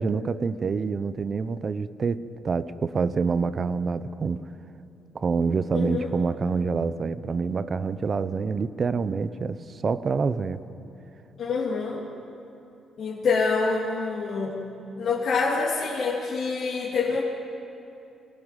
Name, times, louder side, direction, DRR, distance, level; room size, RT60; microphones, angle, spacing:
voice 1, 0.0-4.4 5.1-10.6, right 5 dB, 40° right, 13 dB, 0.9 m, -27 dB
voice 2, 5.7-6.1 11.4-12.0 13.0-14.6 15.0-17.2, left 4 dB, 60° left, -5 dB, 2.9 m, -26 dB
25.0 x 18.5 x 9.2 m, 2.8 s
cardioid pair, 90°, 0 cm